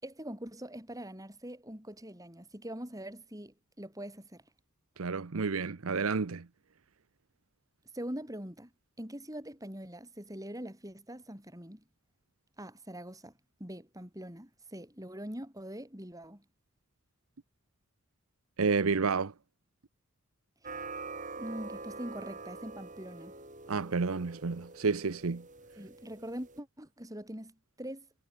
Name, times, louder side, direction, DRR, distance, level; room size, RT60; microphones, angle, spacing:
voice 1, 0.0-4.4 7.9-8.7 9.0-11.8 12.6-13.3 13.6-16.4 20.6-20.8 21.4-23.3 25.8-28.1, equal, 15° right, 6.7 m, -43 dB
voice 2, 5.0-6.5 18.6-19.3 23.7-25.4, right 4 dB, 80° right, 0.8 m, -30 dB
sound 1, 20.6-26.6, right 3 dB, 35° right, 4.7 m, -45 dB
head